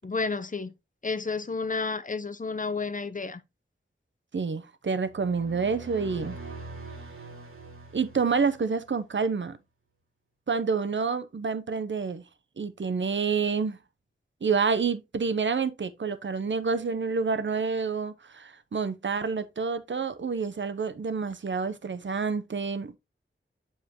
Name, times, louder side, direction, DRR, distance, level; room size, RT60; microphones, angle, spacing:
voice 1, 0.0-0.7 1.0-3.4, left 4 dB, 40° left, 0.8 m, -31 dB
voice 2, 4.3-6.4 7.9-9.6 10.5-12.2 12.6-13.8 14.4-23.0, right 5 dB, 60° right, 0.7 m, -28 dB
sound 1, 5.0-8.9, right 3 dB, 80° right, 2.2 m, -43 dB
7.3 x 5.5 x 2.9 m
wide cardioid pair, 65°, 21 cm